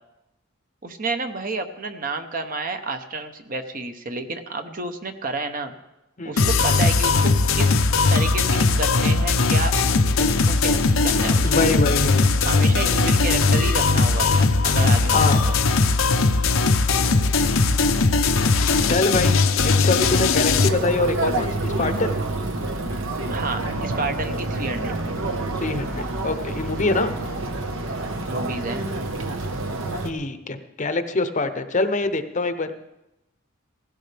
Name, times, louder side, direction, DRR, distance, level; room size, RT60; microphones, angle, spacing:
voice 1, 0.8-5.7 6.2-7.8 8.1-9.8 10.2-11.7 12.5-15.6 23.3-24.9 28.3-28.9, right 3 dB, 45° right, 7 dB, 1.0 m, -30 dB
sound 1, 6.4-20.7, left 3 dB, 85° left, 0.8 m, -19 dB
voice 2, 11.4-12.3 15.1-15.5 18.9-19.3 19.6-22.1 25.6-27.1 30.0-32.7, left 3 dB, 40° left, 9 dB, 0.8 m, -24 dB
sound 2, 20.7-30.1, right 2 dB, 75° right, 1.3 m, -28 dB
17.0 x 15.5 x 3.4 m, 0.92 s
head